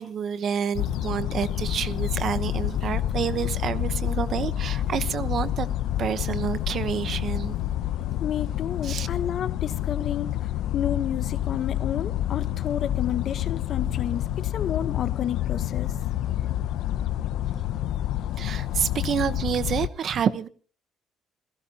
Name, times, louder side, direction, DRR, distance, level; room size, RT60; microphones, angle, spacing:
voice 1, 0.0-5.7 6.0-7.6 8.8-9.1 18.4-20.5, right 8 dB, 50° right, 1.1 m, -28 dB
sound 1, 0.7-19.9, left 12 dB, 85° left, 0.7 m, -28 dB
voice 2, 8.2-10.3 10.7-16.0, left 9 dB, 50° left, 1.1 m, -31 dB
28.0 x 16.5 x 2.9 m
cardioid pair, 150°, 0 cm